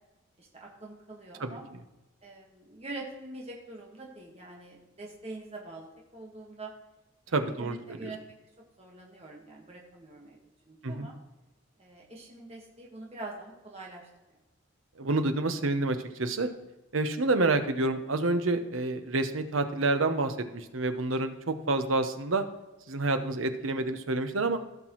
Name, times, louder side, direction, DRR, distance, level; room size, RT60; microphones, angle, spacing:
voice 1, 0.4-1.6 2.2-5.9 6.1-6.7 7.3-8.2 8.8-10.4 10.7-11.1 11.8-14.4 16.4-16.5, right 2 dB, 30° right, -2 dB, 1.5 m, -44 dB
voice 2, 7.3-8.1 10.8-11.1 15.0-16.5 16.9-22.4 22.9-24.6, right 2 dB, 80° right, 8 dB, 0.9 m, -28 dB
15.5 x 6.1 x 3.1 m, 1.1 s
head